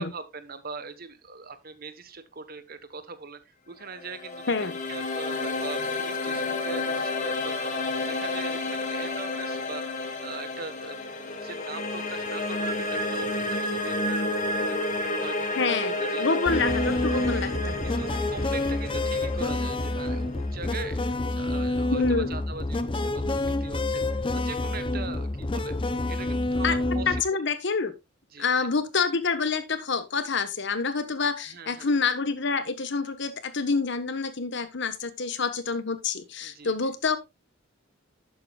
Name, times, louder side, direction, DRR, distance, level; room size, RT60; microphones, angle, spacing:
voice 1, 0.0-3.4 3.7-4.5 4.9-7.7 8.1-14.8 15.2-16.5 17.2-17.5 17.8-25.7 26.1-27.4 28.3-28.7 31.4-31.9 36.4-36.9, right 4 dB, 50° right, 1.2 m, -41 dB
sound 1, 3.9-21.0, left 2 dB, 40° left, 1.9 m, -31 dB
voice 2, 15.6-15.9 16.2-17.8 21.9-22.3 26.6-26.8 27.1-27.9 28.4-37.2, left 4 dB, 65° left, 1.3 m, -27 dB
sound 2, 16.5-27.2, left 2 dB, 25° left, 0.6 m, -28 dB
12.0 x 8.6 x 2.4 m
head